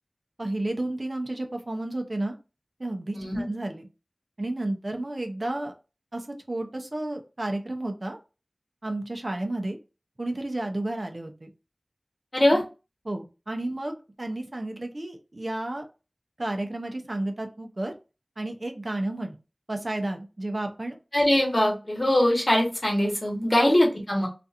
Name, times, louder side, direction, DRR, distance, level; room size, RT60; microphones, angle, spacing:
voice 1, 0.4-2.3 2.8-3.9 4.4-5.7 6.1-8.2 8.8-9.8 10.2-11.5 12.5-12.6 13.1-15.9 16.4-17.9 18.4-19.3 19.7-21.0 23.6-23.7, right 1 dB, 55° right, 4 dB, 0.5 m, -32 dB
voice 2, 3.1-3.4 12.3-12.6 21.1-24.3, left 1 dB, 50° left, -2 dB, 1.0 m, -22 dB
2.4 x 2.3 x 2.7 m, 0.31 s
wide cardioid pair, 50°, 0 cm